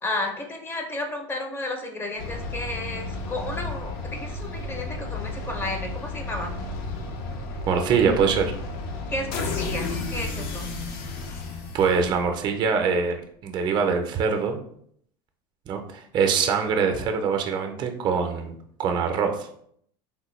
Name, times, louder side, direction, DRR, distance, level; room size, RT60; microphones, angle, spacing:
voice 1, 0.0-6.5 9.1-10.7, left 2 dB, 20° left, 3 dB, 0.5 m, -32 dB
sound 1, 2.2-12.4, left 3 dB, 75° left, 0.6 m, -33 dB
voice 2, 7.7-8.5 11.7-14.6 15.7-19.5, right 6 dB, 35° right, 5 dB, 0.5 m, -24 dB
3.5 x 2.1 x 3.1 m, 0.66 s
supercardioid pair, 125°, 13 cm